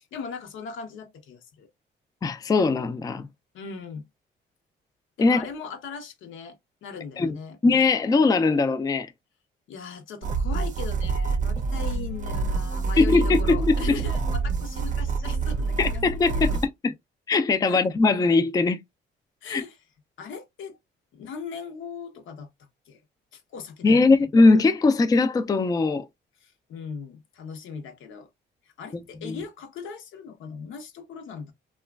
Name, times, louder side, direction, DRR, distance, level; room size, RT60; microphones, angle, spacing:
voice 1, 0.0-1.7 3.5-4.1 5.2-7.6 9.7-16.0 16.3-16.6 17.6-17.9 19.4-19.8 20.2-20.8 21.1-22.5 22.9-23.0 23.3-24.0 26.4-28.3 28.6-31.5, left 5 dB, 80° left, 0.8 m, -39 dB
voice 2, 2.2-3.3 5.2-5.5 7.2-7.4 7.6-9.1 13.0-14.0 15.8-16.5 16.8-16.9 17.3-18.8 19.5-19.6 23.8-26.0 28.9-29.4, left 3 dB, 20° left, 0.3 m, -20 dB
sound 1, 10.2-16.7, right 4 dB, 40° right, 0.5 m, -27 dB
2.9 x 2.3 x 2.3 m
cardioid pair, 90°, 20 cm